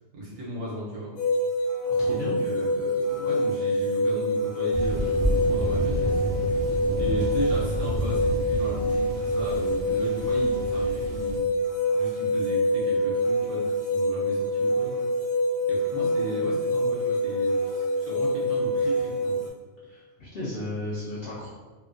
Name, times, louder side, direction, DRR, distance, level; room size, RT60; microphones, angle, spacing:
voice 1, 0.1-1.1 2.1-6.2 6.6-11.5 11.9-15.0 15.6-19.4, equal, 75° right, -6 dB, 1.2 m, -35 dB
sound 1, 1.2-19.5, equal, 85° left, 1.0 m, -26 dB
voice 2, 1.9-2.4 19.9-21.5, left 1 dB, 65° left, -7 dB, 0.6 m, -34 dB
Thunder, 4.7-11.4, equal, 60° right, 0.3 m, -30 dB
2.8 x 2.1 x 2.5 m, 1.3 s
omnidirectional pair, 1.4 m